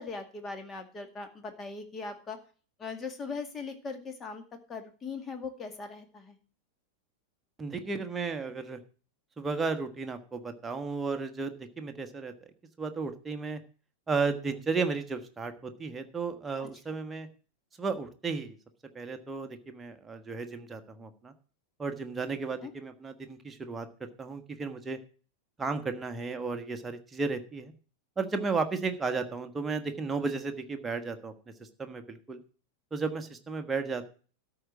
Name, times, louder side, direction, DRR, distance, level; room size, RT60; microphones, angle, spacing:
voice 1, 0.0-2.4 2.8-4.4 4.7-6.4 22.6-22.7, left 4 dB, 20° left, 6 dB, 2.0 m, -39 dB
voice 2, 7.6-8.8 9.4-12.3 12.8-13.6 14.1-17.3 17.8-18.6 18.9-21.3 21.8-23.9 24.2-25.0 25.6-27.7 28.2-31.3 31.8-32.4 32.9-34.1, right 4 dB, 15° right, 7 dB, 1.4 m, -34 dB
13.0 x 4.9 x 7.4 m, 0.39 s
figure-of-eight pair, 90°, 0 cm